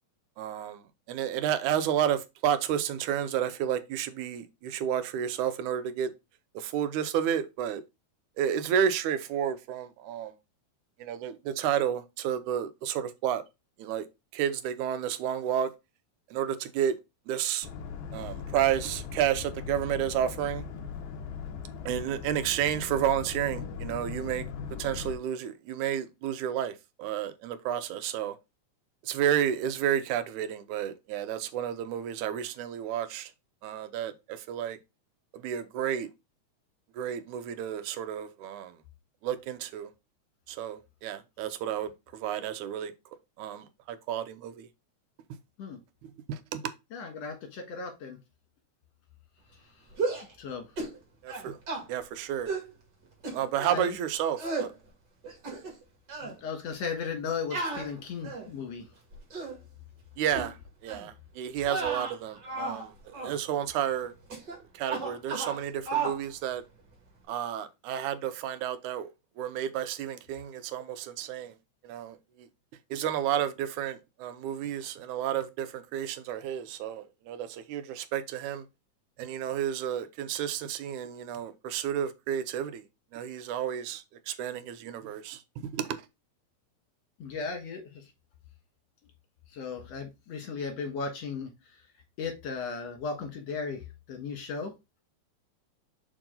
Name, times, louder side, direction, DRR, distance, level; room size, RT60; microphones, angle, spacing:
voice 1, 0.4-0.8 1.1-6.1 6.6-7.8 8.4-10.3 11.0-13.4 13.8-14.0 14.3-15.7 16.3-16.9 17.3-17.7 18.1-20.7 21.9-24.5 24.8-28.4 29.0-33.3 33.6-34.8 35.3-36.1 37.0-38.7 39.2-39.9 40.5-42.9 43.4-44.7 46.3-46.7 51.2-51.6 51.9-52.5 53.3-54.7 60.2-60.6 60.8-64.1 64.7-66.6 67.3-69.1 69.4-71.5 71.8-72.2 72.9-78.6 79.2-82.8 83.1-86.0, right 9 dB, 90° right, 2.2 m, -31 dB
Boat Water vehicle, 17.6-25.1, left 6 dB, 85° left, 1.1 m, -39 dB
voice 2, 46.9-48.2 50.4-50.7 53.7-54.0 56.2-58.9 87.2-88.1 89.5-91.5 92.2-93.8 94.1-94.7, left 5 dB, 65° left, 2.6 m, -36 dB
sound 1, 49.9-50.3 50.8-51.0 51.3-51.8 52.5-52.7 53.2-53.8 54.4-54.7 55.2-55.8 56.1-56.3 57.5-58.6 59.1-59.6 60.3-60.5 60.9-61.1 61.6-62.8 63.1-63.4 64.3-64.6 64.8-65.6 65.9-66.2, right 4 dB, 40° right, 2.2 m, -34 dB
6.0 x 4.6 x 3.8 m
omnidirectional pair, 3.3 m